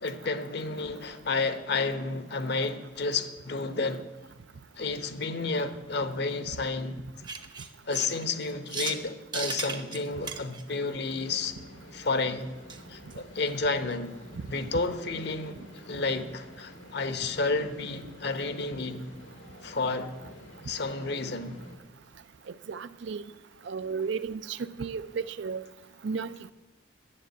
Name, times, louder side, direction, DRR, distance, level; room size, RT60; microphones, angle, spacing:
voice 1, 0.0-4.1 4.8-7.0 7.9-11.6 11.9-12.5 12.9-14.1 14.5-19.1 19.6-20.1 20.6-21.6, left 3 dB, 60° left, 0.9 m, -31 dB
sound 1, 7.2-9.0 9.3-10.6 12.7-12.8 13.1-13.2 13.5-13.6 13.9-14.0, right 5 dB, 25° right, 0.7 m, -36 dB
sound 2, 11.1-21.8, left 1 dB, 90° left, 1.9 m, -49 dB
voice 2, 22.7-23.2 23.7-25.6 26.0-26.4, right 5 dB, 65° right, 0.4 m, -33 dB
9.8 x 7.4 x 9.2 m
head